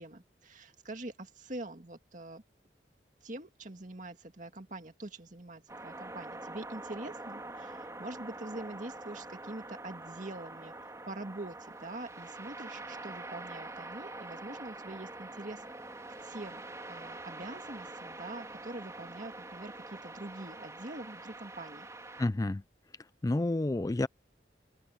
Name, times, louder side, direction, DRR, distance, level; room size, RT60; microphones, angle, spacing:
voice 1, 0.0-2.4 3.2-15.6 16.2-16.6 16.9-21.9, right 2 dB, 45° right, 2.0 m, -44 dB
sound 1, 5.7-22.3, right 2 dB, 15° right, 3.0 m, -45 dB
voice 2, 22.2-22.6 23.2-24.1, left 2 dB, 20° left, 0.4 m, -29 dB
open air
head